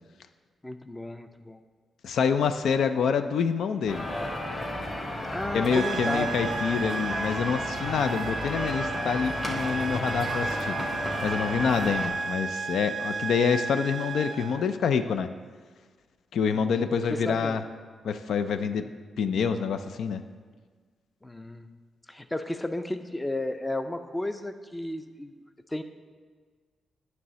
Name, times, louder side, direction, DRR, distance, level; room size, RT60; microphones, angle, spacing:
voice 1, 0.6-1.6 5.3-6.3 16.5-16.8 17.1-17.6 21.2-21.7 22.1-25.3 25.7-25.8, left 1 dB, 10° left, 9 dB, 0.4 m, -33 dB
voice 2, 2.0-4.0 5.5-10.8 11.2-15.3 16.3-17.6 18.0-18.9 19.2-20.2, left 6 dB, 75° left, 9 dB, 0.4 m, -27 dB
sound 1, 3.9-12.1, left 1 dB, 30° left, 1.5 m, -33 dB
sound 2, 5.7-14.6, right 4 dB, 50° right, 0.5 m, -33 dB
9.4 x 3.2 x 6.7 m, 1.5 s
cardioid pair, 95°, 0 cm